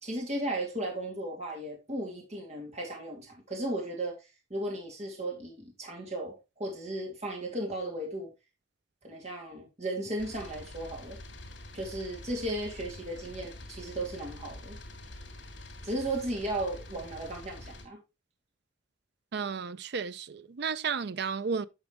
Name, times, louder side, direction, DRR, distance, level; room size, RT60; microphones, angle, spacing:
voice 1, 0.0-4.1 4.5-8.3 9.0-11.2 11.7-14.8 15.8-18.0, right 1 dB, 40° right, 2.8 m, -35 dB
sound 1, 10.2-17.8, left 1 dB, 75° left, 2.9 m, -46 dB
voice 2, 19.3-21.7, right 5 dB, 65° right, 0.5 m, -33 dB
9.8 x 6.2 x 3.3 m
head